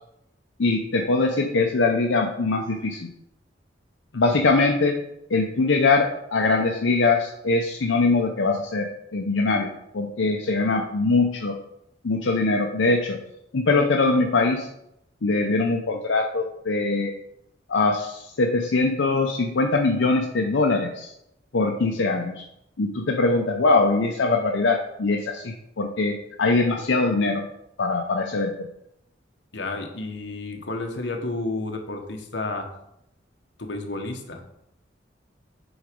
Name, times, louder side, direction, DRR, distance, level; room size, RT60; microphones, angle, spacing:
voice 1, 0.6-3.1 4.1-5.0 5.3-11.5 12.0-13.2 13.5-14.7 15.2-17.1 17.7-21.1 21.5-22.5 22.8-27.5 27.8-28.7, left 3 dB, 85° left, 2 dB, 0.7 m, -22 dB
voice 2, 29.5-32.7 33.6-34.4, left 2 dB, 65° left, 3 dB, 1.1 m, -31 dB
7.9 x 4.0 x 5.2 m, 0.80 s
head